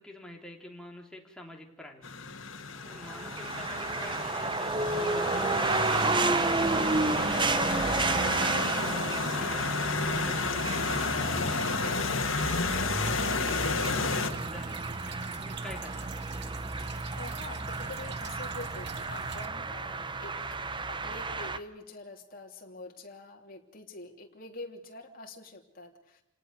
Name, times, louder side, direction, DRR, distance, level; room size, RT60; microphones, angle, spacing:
voice 1, 0.0-2.1 2.8-7.7 8.0-14.9 15.3-16.1, left 1 dB, 5° left, 0 dB, 3.3 m, -47 dB
sound 1, 2.0-14.3, left 4 dB, 75° left, 2.0 m, -32 dB
sound 2, 3.0-21.6, right 3 dB, 25° right, 1.0 m, -31 dB
sound 3, 13.0-19.5, right 4 dB, 60° right, 1.5 m, -44 dB
voice 2, 17.1-20.4 20.9-26.2, left 2 dB, 45° left, 2 dB, 3.2 m, -46 dB
29.0 x 18.5 x 6.7 m, 0.79 s
head